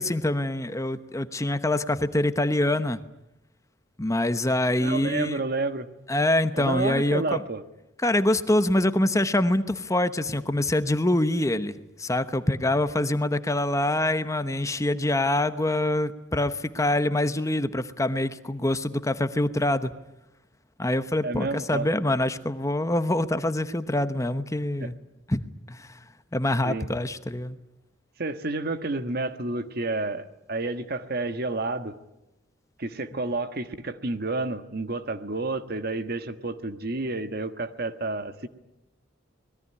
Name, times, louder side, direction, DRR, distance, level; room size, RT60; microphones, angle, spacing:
voice 1, 0.0-3.0 4.0-5.4 6.1-7.4 8.0-19.9 20.8-25.0 25.3-25.4 25.7-26.0 26.3-27.6, left 1 dB, 15° left, 11 dB, 1.0 m, -25 dB
voice 2, 4.8-5.9 6.5-7.6 21.2-21.9 24.8-24.9 26.6-26.9 28.2-31.9 32.8-38.5, right 2 dB, 55° right, 9 dB, 1.5 m, -30 dB
25.5 x 20.5 x 9.8 m, 0.93 s
head